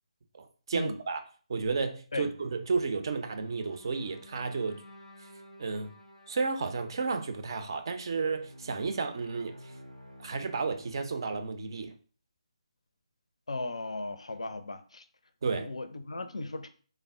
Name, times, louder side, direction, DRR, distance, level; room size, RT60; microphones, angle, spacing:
voice 1, 0.3-1.2 1.5-4.8 5.6-5.9 6.3-9.5 10.2-11.9 15.4-15.7, right 4 dB, 40° right, 0.4 m, -32 dB
sound 1, 2.2-11.4, equal, 85° right, 0.6 m, -53 dB
voice 2, 13.5-15.0 15.6-16.7, left 2 dB, 65° left, 0.4 m, -36 dB
3.3 x 2.1 x 3.5 m
figure-of-eight pair, 145°, 3 cm